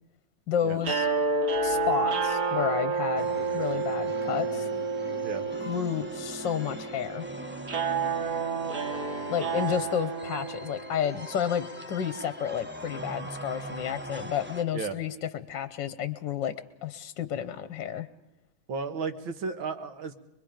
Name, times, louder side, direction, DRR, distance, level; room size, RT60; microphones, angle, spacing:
voice 1, 0.5-1.1 1.6-4.7 5.7-7.3 9.3-16.5 16.8-18.1, left 9 dB, 65° left, 12 dB, 1.5 m, -31 dB
sound 1, 0.8-11.0, right 4 dB, 50° right, 2.5 m, -30 dB
sound 2, 3.2-14.6, right 1 dB, 10° right, 0.8 m, -41 dB
voice 2, 18.7-20.1, right 4 dB, 65° right, 8 dB, 2.1 m, -34 dB
25.0 x 23.0 x 5.1 m, 0.93 s
omnidirectional pair, 2.3 m